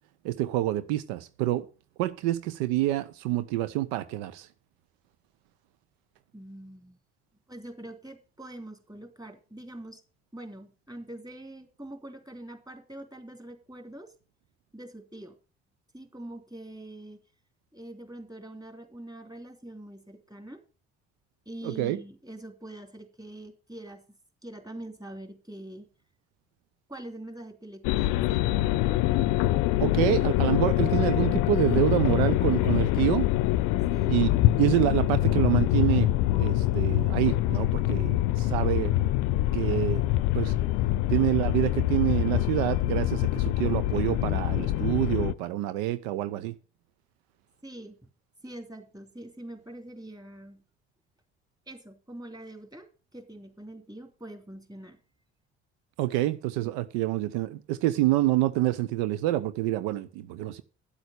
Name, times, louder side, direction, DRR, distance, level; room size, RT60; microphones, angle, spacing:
voice 1, 0.2-1.7 2.0-4.5 21.6-22.0 29.8-33.3 34.1-34.3 34.6-36.1 36.4-38.9 39.5-40.1 40.3-40.5 41.1-46.5 56.0-60.6, right 15 dB, 80° right, 0.6 m, -27 dB
voice 2, 6.3-7.0 7.5-10.0 10.3-14.1 14.7-15.4 15.9-17.2 17.7-20.6 21.4-24.0 24.4-25.9 26.9-28.4 33.9-34.2 47.6-48.1 48.4-50.6 51.7-55.0, right 1 dB, 10° right, 3.2 m, -44 dB
sound 1, 27.8-45.3, left 15 dB, 75° left, 0.6 m, -25 dB
10.5 x 7.9 x 6.5 m
hypercardioid pair, 50°, 31 cm